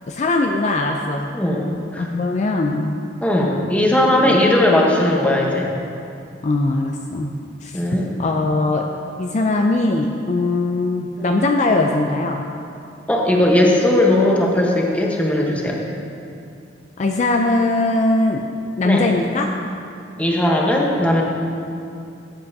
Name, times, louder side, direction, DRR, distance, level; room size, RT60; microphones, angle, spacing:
voice 1, 0.1-1.3 2.0-3.0 4.2-4.4 6.4-7.3 7.6-7.8 8.2-8.9 9.2-12.4 17.0-18.4 18.8-19.5, left 2 dB, 40° left, 2 dB, 0.4 m, -20 dB
voice 2, 1.3-2.1 3.2-5.7 7.7-8.1 11.2-11.3 13.1-15.8 18.8-19.0 20.2-21.2, left 1 dB, 10° left, -2 dB, 1.0 m, -18 dB
13.5 x 8.1 x 2.7 m, 2.5 s
head